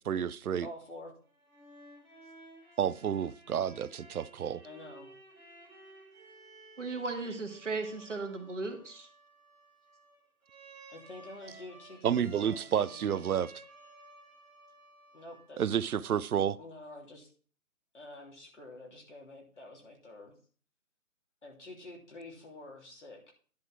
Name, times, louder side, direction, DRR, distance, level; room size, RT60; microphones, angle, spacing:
voice 1, 0.1-0.7 2.8-4.6 12.0-13.5 15.6-16.6, right 8 dB, 90° right, 0.6 m, -30 dB
voice 2, 0.6-1.1 2.6-2.7 4.6-5.1 10.9-13.2 15.1-15.6 16.6-17.3 17.9-20.3 21.4-23.3, left 2 dB, 55° left, 3.2 m, -48 dB
sound 1, 1.2-15.9, right 2 dB, ahead, 1.3 m, -55 dB
voice 3, 6.8-9.1, right 3 dB, 60° right, 1.9 m, -36 dB
10.5 x 4.7 x 5.9 m
figure-of-eight pair, 175°, 43 cm